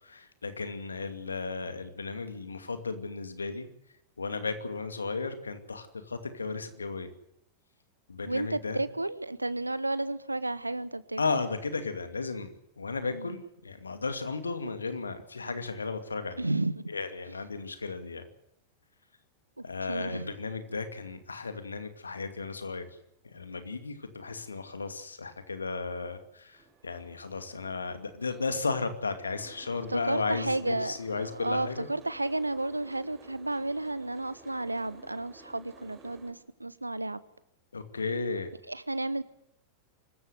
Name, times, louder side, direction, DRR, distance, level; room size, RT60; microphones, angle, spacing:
voice 1, 0.0-3.7 4.2-7.1 8.1-8.8 11.2-16.4 16.9-18.3 19.6-22.9 23.2-31.9 37.7-38.5, left 4 dB, 75° left, 9 dB, 2.5 m, -34 dB
voice 2, 8.3-11.2 13.0-13.4 16.4-16.9 19.6-20.3 29.9-37.2 38.7-39.2, right 2 dB, 85° right, 17 dB, 1.1 m, -32 dB
Boat Water vehicle, 26.5-36.3, right 3 dB, 30° right, 5.1 m, -54 dB
24.5 x 14.5 x 8.2 m, 0.78 s
figure-of-eight pair, 90°, 0 cm